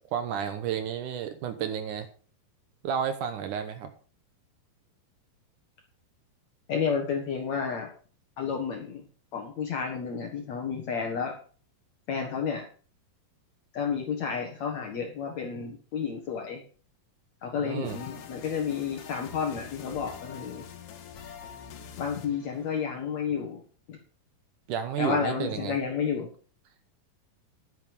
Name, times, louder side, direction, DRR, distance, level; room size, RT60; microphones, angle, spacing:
voice 1, 0.1-2.1 2.8-3.9 17.6-18.0 24.7-25.8, right 8 dB, 70° right, 9 dB, 2.4 m, -31 dB
voice 2, 6.7-7.9 8.4-9.0 9.3-11.3 12.1-12.6 13.7-16.6 17.4-20.6 22.0-23.6 23.9-24.0 25.0-26.3, left 6 dB, 60° left, 2 dB, 2.6 m, -31 dB
sound 1, 17.8-23.1, left 8 dB, 80° left, 3.4 m, -45 dB
11.0 x 9.2 x 5.4 m, 0.40 s
omnidirectional pair, 4.0 m